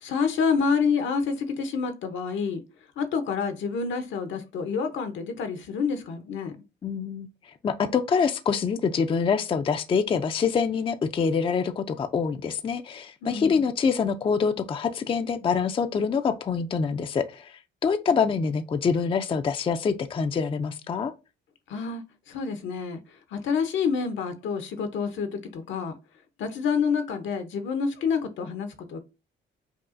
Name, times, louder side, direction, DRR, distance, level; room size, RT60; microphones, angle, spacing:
voice 1, 0.0-2.6 3.0-6.6 13.2-13.6 21.7-22.0 22.3-23.0 23.3-25.9 26.4-29.0, left 5 dB, 70° left, 0.7 m, -28 dB
voice 2, 6.8-7.3 7.6-21.1, left 6 dB, 25° left, 0.3 m, -25 dB
5.3 x 2.4 x 2.5 m
cardioid pair, 90°, 20 cm